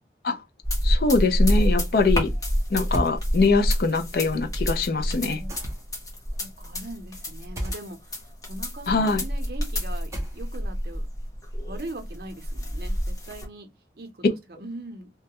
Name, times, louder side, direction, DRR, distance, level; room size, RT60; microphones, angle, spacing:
sound 1, 0.6-13.5, equal, 20° left, 0.8 m, -27 dB
voice 1, 0.8-2.3 2.7-5.4 8.9-9.3, left 3 dB, 55° left, 0.4 m, -23 dB
sound 2, 2.9-3.2 5.5-6.0 7.6-7.8 10.1-10.7, equal, 15° right, 0.5 m, -31 dB
voice 2, 6.3-11.1 11.6-13.7 14.0-14.2 14.6-15.1, right 1 dB, 60° right, 0.6 m, -41 dB
2.3 x 2.1 x 2.8 m
head